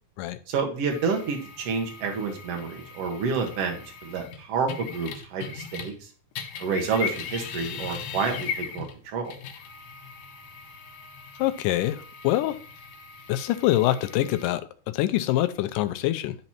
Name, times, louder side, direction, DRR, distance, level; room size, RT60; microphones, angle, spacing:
voice 1, 0.5-5.9 6.6-9.4, right 5 dB, 55° right, 2 dB, 2.4 m, -29 dB
sound 1, 0.9-6.0 6.3-14.4, left 6 dB, 65° left, 2.1 m, -39 dB
voice 2, 11.4-12.6 13.3-14.6 14.9-16.4, left 14 dB, 80° left, 12 dB, 2.2 m, -25 dB
10.5 x 4.2 x 4.2 m, 0.41 s
omnidirectional pair, 3.8 m